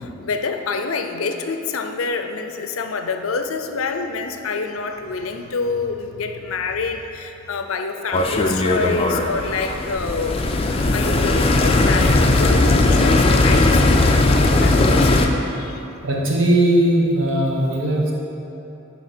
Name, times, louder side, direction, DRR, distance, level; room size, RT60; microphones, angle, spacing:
voice 1, 0.0-10.4 10.9-15.8, left 4 dB, 80° left, 6 dB, 0.5 m, -27 dB
sound 1, 8.1-15.3, left 2 dB, 30° left, 0.4 m, -17 dB
voice 2, 16.0-18.1, right 1 dB, 65° right, -3 dB, 1.3 m, -18 dB
10.5 x 4.2 x 4.3 m, 2.9 s
head